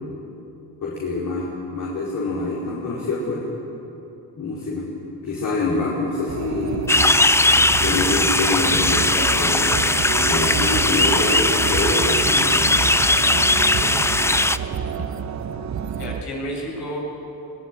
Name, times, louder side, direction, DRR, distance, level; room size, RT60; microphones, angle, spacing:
voice 1, 0.8-3.5 4.4-4.9 5.2-6.9 7.6-9.0 9.3-9.8 10.2-12.5, left 3 dB, 55° left, -6 dB, 4.9 m, -26 dB
sound 1, 6.3-16.2, right 7 dB, 45° right, 1.2 m, -28 dB
sound 2, 6.9-14.6, left 2 dB, 5° left, 0.5 m, -19 dB
voice 2, 13.7-14.1 16.0-17.0, equal, 75° left, -1 dB, 7.2 m, -31 dB
22.0 x 17.5 x 9.2 m, 2.9 s
cardioid pair, 100°, 38 cm